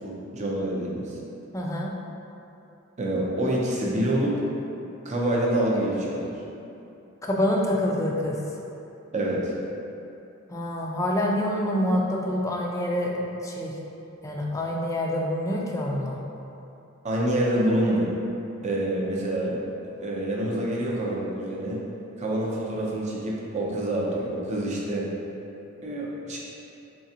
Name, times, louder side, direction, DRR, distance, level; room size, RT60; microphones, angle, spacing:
voice 1, 0.0-1.2 3.0-4.4 5.0-6.4 9.1-9.5 17.0-18.1 18.6-19.7 20.0-21.8 22.2-25.1 25.8-26.4, right 1 dB, 35° right, -4 dB, 0.5 m, -26 dB
voice 2, 1.5-1.9 7.2-8.4 10.5-13.8 14.2-16.2, left 1 dB, 15° left, -2 dB, 0.3 m, -26 dB
3.7 x 3.3 x 2.8 m, 2.8 s
head